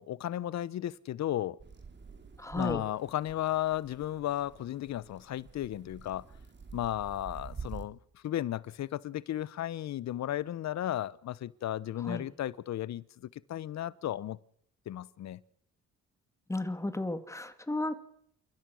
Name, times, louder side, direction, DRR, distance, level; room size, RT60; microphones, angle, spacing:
voice 1, 0.0-1.6 2.5-6.2 6.7-14.4 14.9-15.4, left 12 dB, 65° left, 0.8 m, -34 dB
sound 1, 1.6-7.8, right 5 dB, 35° right, 3.2 m, -48 dB
voice 2, 2.4-2.8 12.1-12.2 16.5-17.9, left 2 dB, 10° left, 2.3 m, -33 dB
29.0 x 14.0 x 6.3 m
cardioid pair, 90°, 30 cm